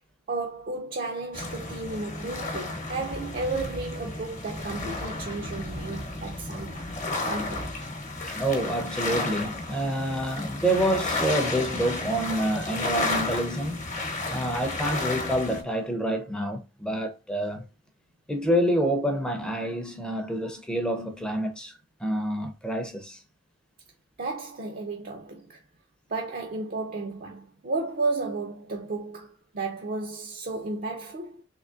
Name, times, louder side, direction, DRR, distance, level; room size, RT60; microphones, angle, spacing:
voice 1, 0.3-6.9 7.2-7.7 24.2-25.6 26.1-31.4, right 3 dB, 45° right, 0.5 m, -33 dB
sound 1, 1.3-15.6, left 2 dB, 40° left, 0.9 m, -32 dB
voice 2, 8.3-13.9 14.3-17.7 18.3-21.7 22.0-23.2, right 1 dB, 5° left, 0.6 m, -27 dB
3.6 x 3.1 x 2.5 m
head